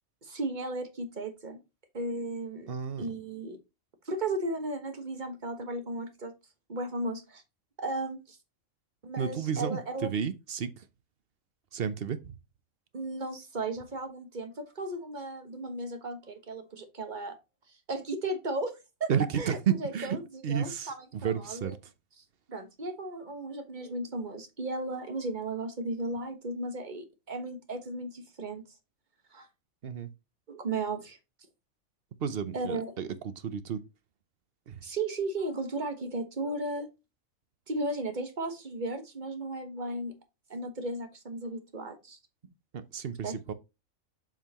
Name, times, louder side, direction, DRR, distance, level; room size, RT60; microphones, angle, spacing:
voice 1, 0.2-1.6 1.9-2.7 3.0-3.6 4.1-6.3 6.7-7.4 7.8-8.4 9.0-10.1 12.9-17.4 17.9-19.1 19.4-21.7 22.5-28.6 29.3-29.5 30.5-31.2 32.5-32.9 34.8-36.9 37.7-40.1 40.5-42.2 43.2-43.3, right 2 dB, 35° right, 1.4 m, -35 dB
voice 2, 2.7-3.1 9.2-10.8 11.7-12.3 19.1-20.2 20.4-21.8 29.8-30.1 32.2-33.8 34.7-34.8 42.7-43.5, right 7 dB, 50° right, 0.8 m, -32 dB
7.3 x 5.5 x 2.9 m
omnidirectional pair, 1.4 m